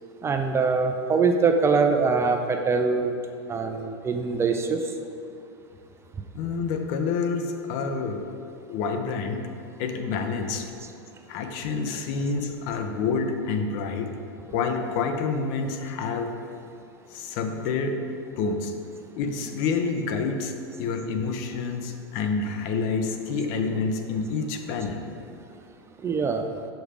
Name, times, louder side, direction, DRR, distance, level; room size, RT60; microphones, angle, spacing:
voice 1, 0.2-3.1 3.5-4.8 11.9-12.0 14.6-14.8 19.4-19.5 26.0-26.5, right 4 dB, 20° right, 5 dB, 0.4 m, -23 dB
voice 2, 6.3-8.3 8.7-9.5 9.8-10.7 11.3-14.1 14.5-16.3 17.1-18.1 18.4-18.7 19.1-20.5 20.8-25.1, left 4 dB, 55° left, 6 dB, 0.6 m, -28 dB
6.2 x 3.4 x 4.9 m, 2.4 s
hypercardioid pair, 110°, 13 cm